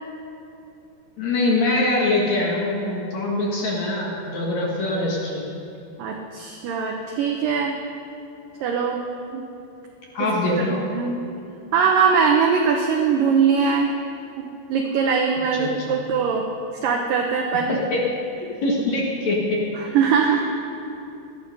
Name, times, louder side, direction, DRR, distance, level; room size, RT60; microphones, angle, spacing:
voice 1, 1.2-5.4 10.1-10.8 15.5-16.0 17.5-18.0 18.4-19.6, left 2 dB, 50° left, -2 dB, 2.5 m, -23 dB
voice 2, 6.0-7.8 8.6-9.5 10.2-11.2 11.7-14.0 14.4-16.4 16.8-17.7 19.7-20.4, right 6 dB, 75° right, 2 dB, 2.1 m, -21 dB
18.5 x 12.5 x 5.4 m, 2.8 s
omnidirectional pair, 5.0 m